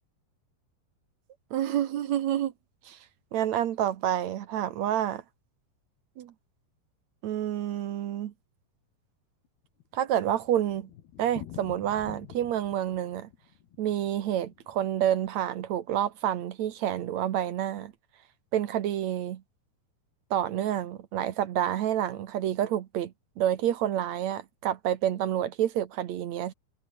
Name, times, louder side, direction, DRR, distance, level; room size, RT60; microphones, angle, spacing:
voice 1, 1.5-2.5 2.9-3.0 3.3-5.2 6.2-6.3 7.2-8.3 9.9-10.9 11.2-13.3 13.8-17.9 18.5-19.4 20.3-26.5, right 11 dB, 65° right, 1.8 m, -28 dB
Thunder, 9.5-15.7 16.0-16.1 16.4-16.5 16.7-16.8 17.4-17.7, left 11 dB, 75° left, 3.8 m, -48 dB
omnidirectional pair, 4.6 m